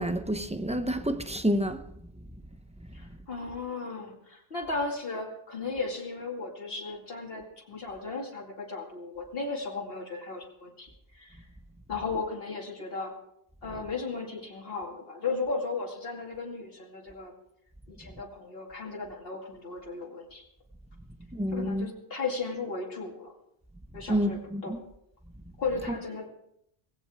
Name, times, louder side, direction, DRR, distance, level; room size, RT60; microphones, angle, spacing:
voice 1, 0.0-1.8 21.3-21.9 24.1-24.8, equal, 5° right, 0.7 m, -28 dB
voice 2, 2.9-11.5 11.9-13.2 13.6-17.3 17.9-20.5 21.5-23.3 23.9-24.8 25.6-26.3, left 4 dB, 65° left, 2.5 m, -35 dB
18.0 x 17.0 x 3.5 m
omnidirectional pair, 1.0 m